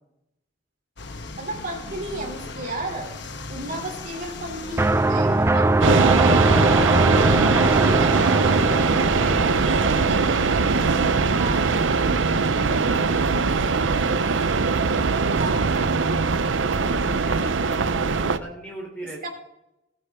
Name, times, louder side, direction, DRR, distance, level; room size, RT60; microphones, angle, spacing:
sound 1, 1.0-14.5, left 2 dB, 65° left, 1.1 m, -40 dB
voice 1, 1.4-3.1 3.5-6.7 7.4-8.3 9.7-10.6 11.3-11.6 15.2-15.6 19.2-19.3, right 2 dB, 50° right, 0 dB, 3.3 m, -33 dB
sound 2, 4.8-11.5, right 2 dB, 15° right, 0.4 m, -22 dB
sound 3, 5.8-18.4, right 4 dB, 85° right, 0.7 m, -21 dB
voice 2, 16.9-19.3, right 1 dB, 10° left, -1 dB, 3.4 m, -40 dB
20.0 x 9.1 x 3.7 m, 0.88 s
head